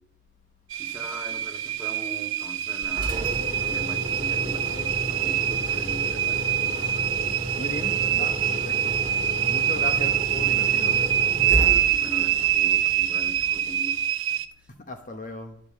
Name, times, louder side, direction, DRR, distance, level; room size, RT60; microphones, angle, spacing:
sound 1, 0.7-14.5, right 11 dB, 90° right, 0.6 m, -25 dB
voice 1, 0.8-3.4 3.6-6.6 12.0-14.0 14.6-14.7, right 1 dB, 5° right, 1.6 m, -41 dB
Engine, 2.8-13.8, equal, 25° right, 1.7 m, -33 dB
voice 2, 7.6-9.0 9.4-11.6 14.8-15.6, left 2 dB, 40° left, 1.0 m, -37 dB
11.5 x 5.3 x 7.4 m
head